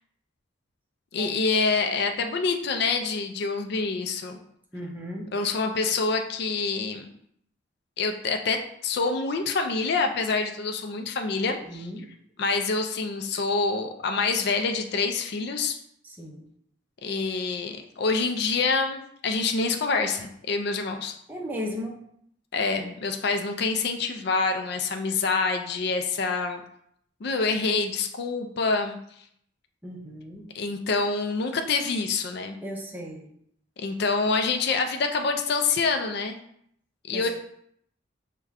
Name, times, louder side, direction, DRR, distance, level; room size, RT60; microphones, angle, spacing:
voice 1, 1.1-4.4 5.3-7.1 8.0-11.9 12.4-15.8 17.0-21.1 22.5-26.6 27.2-29.0 30.5-32.6 33.8-36.4 37.0-37.3, left 4 dB, 55° left, 5 dB, 0.4 m, -26 dB
voice 2, 4.7-5.3 11.7-12.1 16.0-16.5 21.3-22.0 29.8-30.5 32.6-33.3 37.1-37.3, equal, 10° right, 0 dB, 0.6 m, -36 dB
4.8 x 2.2 x 3.6 m, 0.69 s
head